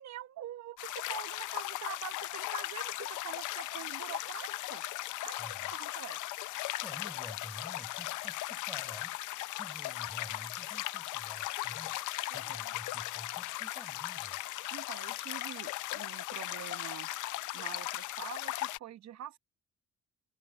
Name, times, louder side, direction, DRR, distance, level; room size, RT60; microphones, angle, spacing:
voice 1, 0.0-4.8 5.2-6.2 12.3-12.6 14.7-17.1 17.5-19.4, right 11 dB, 60° right, 1.1 m, -45 dB
sound 1, 0.8-18.8, left 16 dB, 80° left, 0.6 m, -38 dB
voice 2, 5.3-5.9 6.8-14.4, equal, ahead, 6.7 m, -51 dB
cardioid pair, 90°, 30 cm